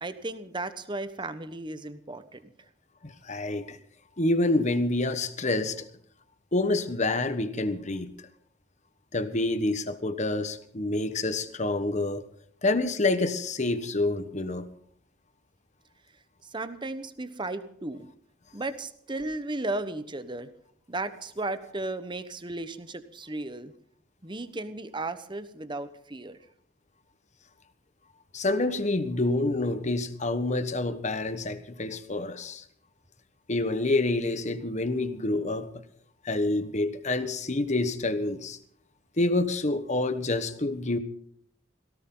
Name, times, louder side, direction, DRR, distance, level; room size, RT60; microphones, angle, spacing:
voice 1, 0.0-2.5 16.4-18.1 18.5-20.5 20.9-23.7 24.2-26.4, right 2 dB, 25° right, 11 dB, 1.1 m, -35 dB
voice 2, 3.0-3.8 4.2-5.8 6.5-8.1 9.1-12.2 12.6-14.7 28.3-32.6 33.5-35.7 36.2-38.6 39.2-41.0, left 2 dB, 40° left, 11 dB, 1.2 m, -27 dB
17.5 x 17.5 x 3.9 m, 0.65 s
head